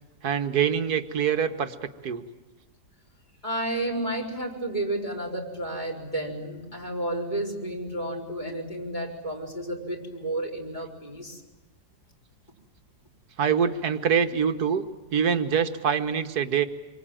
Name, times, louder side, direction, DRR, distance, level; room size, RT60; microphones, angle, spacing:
voice 1, 0.2-1.8 2.0-2.2 13.4-14.8 15.1-16.7, right 7 dB, 60° right, 8 dB, 1.7 m, -24 dB
voice 2, 3.4-11.4, right 1 dB, 25° left, -1 dB, 4.5 m, -31 dB
26.5 x 23.0 x 9.1 m, 1.2 s
omnidirectional pair, 1.9 m